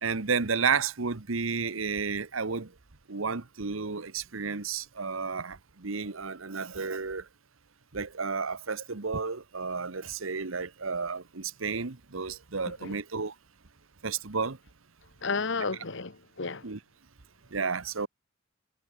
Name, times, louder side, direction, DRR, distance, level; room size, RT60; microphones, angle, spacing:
voice 1, 0.0-2.7 3.1-7.3 7.9-13.3 14.0-14.6 16.6-16.8 17.5-18.1, right 5 dB, 80° right, 1.2 m, -32 dB
voice 2, 12.7-13.0 15.2-16.7, left 4 dB, 65° left, 1.6 m, -32 dB
head